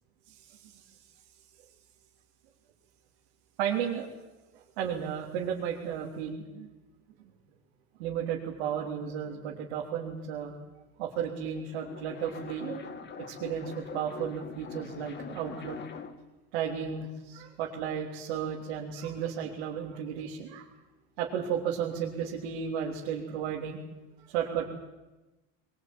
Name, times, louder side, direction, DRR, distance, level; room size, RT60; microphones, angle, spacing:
voice 1, 0.3-0.8 3.6-4.1 4.5-6.7 8.0-10.5 11.0-12.8 13.3-15.8 16.5-20.7 21.2-23.8 24.3-24.6, right 8 dB, 80° right, -2 dB, 3.5 m, -34 dB
sound 1, 11.6-16.3, left 6 dB, 35° left, 2.1 m, -43 dB
22.0 x 20.5 x 9.3 m, 1.1 s
supercardioid pair, 120°, 32 cm